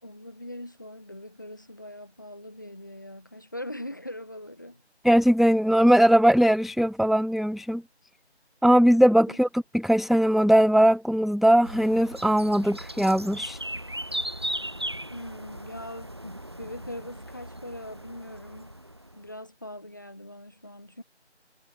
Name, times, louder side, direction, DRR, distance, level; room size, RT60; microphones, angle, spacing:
voice 1, 0.0-4.8 9.3-9.4 15.1-18.7 19.2-21.0, left 1 dB, 15° left, 5.2 m, -41 dB
voice 2, 5.0-7.8 8.6-13.6, equal, ahead, 0.3 m, -20 dB
sound 1, 11.6-19.3, right 1 dB, 25° right, 4.4 m, -37 dB
figure-of-eight pair, 175°, 34 cm